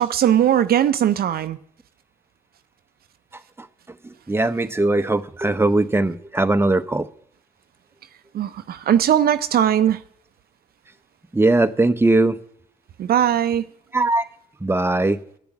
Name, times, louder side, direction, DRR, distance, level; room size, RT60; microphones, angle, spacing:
voice 1, 0.0-1.6 8.3-10.0 13.0-13.7, right 10 dB, 70° right, 0.5 m, -19 dB
voice 2, 4.0-7.1 11.3-12.4 13.9-14.2 14.6-15.2, right 2 dB, 15° right, 0.8 m, -19 dB
10.0 x 6.9 x 8.6 m
supercardioid pair, 45°, 16 cm